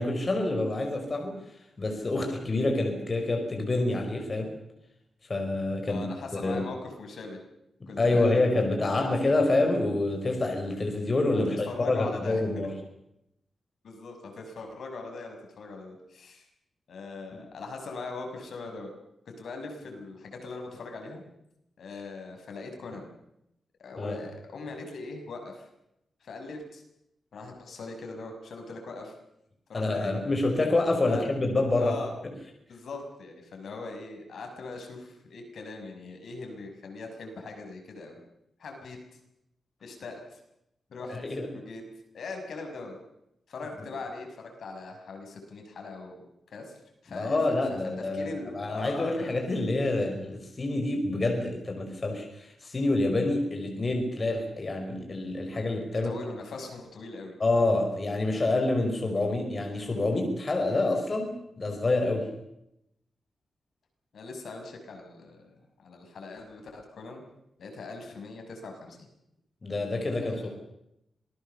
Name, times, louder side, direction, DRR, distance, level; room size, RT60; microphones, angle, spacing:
voice 1, 0.0-1.4 1.8-4.5 5.3-6.1 6.4-6.6 7.8-12.7 24.0-24.2 29.7-31.9 41.1-41.5 47.1-56.1 57.4-62.3 69.6-70.5, left 2 dB, 30° left, 3 dB, 5.0 m, -27 dB
voice 2, 5.9-7.4 7.9-8.4 8.8-9.1 11.3-12.4 13.8-16.5 16.9-18.9 19.4-21.2 21.8-23.1 23.8-25.7 26.2-26.8 27.3-29.1 29.7-30.3 31.1-31.2 31.7-32.2 32.7-38.2 38.6-39.0 39.8-40.4 40.9-41.8 42.1-43.0 43.5-46.2 46.5-47.4 48.0-49.4 56.0-57.4 64.1-67.2 67.6-69.1 70.2-70.5, left 3 dB, 65° left, 3 dB, 6.1 m, -40 dB
26.5 x 20.0 x 6.9 m, 0.81 s
wide cardioid pair, 145°, 0 cm